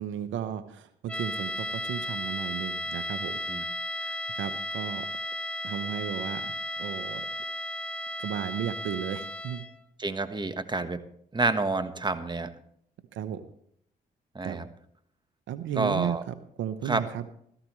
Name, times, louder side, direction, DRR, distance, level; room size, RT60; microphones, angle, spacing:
voice 1, 0.0-3.4 4.0-5.1 5.6-7.2 8.2-9.6 13.1-13.4 14.4-14.6 15.5-17.2, right 9 dB, 80° right, 12 dB, 0.9 m, -34 dB
sound 1, 1.1-9.8, left 1 dB, 5° left, 0.9 m, -34 dB
voice 2, 10.0-11.0 11.3-12.5 14.3-14.7 15.8-16.2 16.8-17.0, right 3 dB, 25° right, 10 dB, 1.3 m, -28 dB
16.0 x 14.0 x 3.2 m, 0.66 s
supercardioid pair, 55°, 20 cm